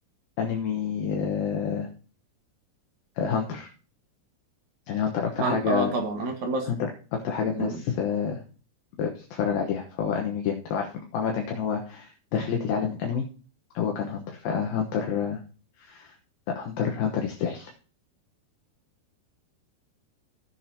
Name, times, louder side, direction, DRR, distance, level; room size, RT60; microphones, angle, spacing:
voice 1, 0.4-1.9 3.2-3.7 4.9-5.9 6.7-6.8 7.1-8.4 9.0-13.3 13.7-15.4 15.8-16.1 16.6-17.7, left 7 dB, 70° left, 1 dB, 2.6 m, -28 dB
voice 2, 5.4-6.7 7.6-7.8, right 3 dB, 60° right, 3 dB, 2.1 m, -28 dB
17.0 x 7.4 x 2.8 m, 0.38 s
omnidirectional pair, 5.0 m